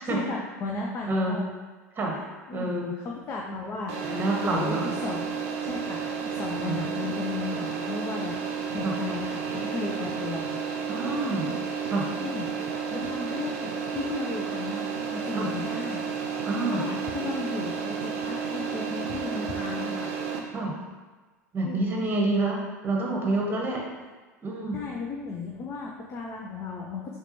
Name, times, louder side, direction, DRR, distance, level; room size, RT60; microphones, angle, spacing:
voice 1, 0.0-1.5 2.1-2.2 2.5-5.3 5.6-6.0 6.2-10.5 12.2-14.9 15.1-16.0 16.3-20.1 21.6-21.9 24.7-27.2, left 4 dB, 30° left, -1 dB, 0.5 m, -35 dB
voice 2, 2.5-2.9 4.0-4.9 6.6-6.8 8.8-8.9 10.9-11.5 11.9-12.1 15.3-15.5 16.5-16.8 20.5-20.7 21.5-23.8 24.4-24.8, right 2 dB, 25° right, -1 dB, 1.0 m, -27 dB
sound 1, 3.9-20.4, right 6 dB, 55° right, 0.6 m, -32 dB
5.7 x 2.3 x 2.9 m, 1.3 s
figure-of-eight pair, 75°, 9 cm